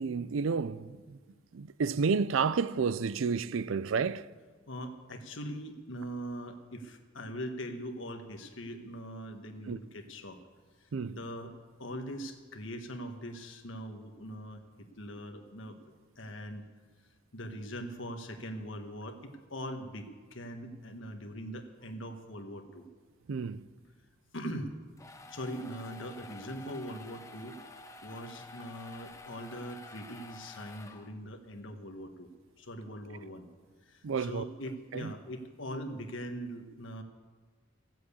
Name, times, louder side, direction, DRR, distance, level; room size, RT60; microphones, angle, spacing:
voice 1, 0.0-1.2 1.5-4.3 9.7-9.8 10.9-11.2 23.3-23.6 34.0-34.5 34.9-35.1, right 5 dB, 85° right, 0.5 m, -31 dB
voice 2, 4.7-10.4 11.1-11.5 11.8-15.8 16.2-16.7 17.3-22.9 24.3-24.7 25.3-27.6 28.0-32.3 32.6-33.5 33.8-37.0, equal, 75° left, 1.4 m, -41 dB
sound 1, 24.7-31.4, left 2 dB, 15° left, 0.7 m, -50 dB
15.0 x 7.7 x 8.4 m
head